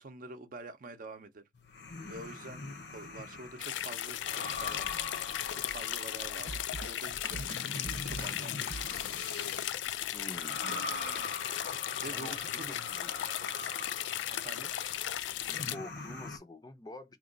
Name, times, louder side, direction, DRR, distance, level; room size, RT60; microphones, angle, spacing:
voice 1, 0.0-1.5 2.0-2.6 2.9-4.9 5.5-6.5 6.9-7.4 8.0-8.6 12.0-12.7 14.3-14.7, right 2 dB, 50° right, 0.6 m, -46 dB
sound 1, 1.5-16.4, left 3 dB, 65° left, 0.9 m, -43 dB
sound 2, 3.6-15.8, left 12 dB, 85° left, 0.3 m, -36 dB
Drum kit, 6.5-8.9, right 3 dB, 85° right, 0.7 m, -42 dB
voice 2, 10.1-10.6 12.0-13.1 13.6-13.7 15.7-17.2, left 2 dB, 20° left, 0.5 m, -47 dB
3.0 x 2.2 x 3.8 m
head